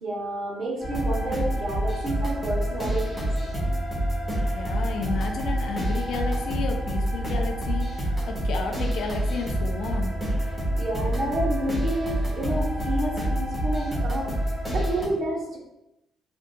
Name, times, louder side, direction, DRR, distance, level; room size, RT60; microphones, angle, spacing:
voice 1, 0.0-3.3 10.8-14.3 14.7-15.6, right 1 dB, 60° right, -2 dB, 0.9 m, -29 dB
sound 1, 0.8-15.1, right 1 dB, 20° right, 1.4 m, -27 dB
voice 2, 4.5-10.1, left 4 dB, 75° left, 3 dB, 0.5 m, -32 dB
3.7 x 2.6 x 2.3 m, 0.89 s
cardioid pair, 90°, 0 cm